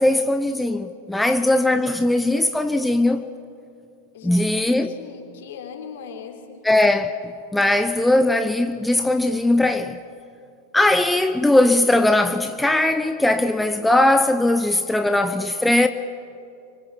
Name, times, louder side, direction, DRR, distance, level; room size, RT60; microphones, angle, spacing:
voice 1, 0.0-3.3 4.2-4.9 6.6-10.0 10.7-15.9, left 1 dB, 5° left, 0.9 m, -19 dB
voice 2, 4.1-6.6 7.7-7.8, left 7 dB, 55° left, 3.7 m, -39 dB
29.5 x 25.0 x 7.6 m
figure-of-eight pair, 90°, 0 cm